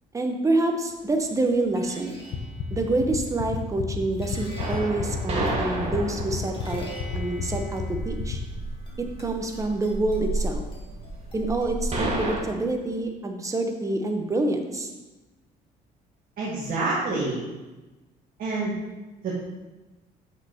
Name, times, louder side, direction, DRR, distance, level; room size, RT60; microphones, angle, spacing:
voice 1, 0.1-2.2 2.7-6.9 7.1-8.4 9.0-10.6 11.3-14.9, right 2 dB, 20° right, 4 dB, 0.9 m, -27 dB
sound 1, 0.9-13.0, equal, 30° left, 1.8 m, -46 dB
sound 2, 2.3-8.4, left 7 dB, 65° left, 0.9 m, -30 dB
sound 3, 4.6-12.4, right 2 dB, 40° right, 1.7 m, -32 dB
voice 2, 16.4-17.4 18.4-18.8 19.2-19.3, right 3 dB, 60° right, -6 dB, 1.7 m, -27 dB
7.5 x 6.0 x 2.9 m, 1.1 s
cardioid pair, 110°, 17 cm